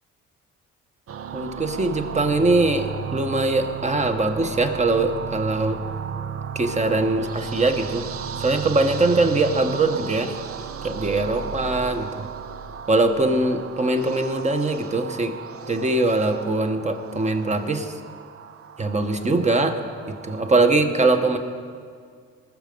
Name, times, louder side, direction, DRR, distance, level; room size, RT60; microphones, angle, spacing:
sound 1, 1.1-20.8, right 7 dB, 50° right, 0.6 m, -35 dB
voice 1, 1.3-5.8 6.5-8.1 8.4-10.3 10.8-12.3 12.9-15.3 15.7-17.9 18.8-19.8 20.1-21.4, right 2 dB, 25° right, 7 dB, 1.1 m, -22 dB
20.0 x 6.7 x 5.3 m, 2.1 s
cardioid pair, 90°, 30 cm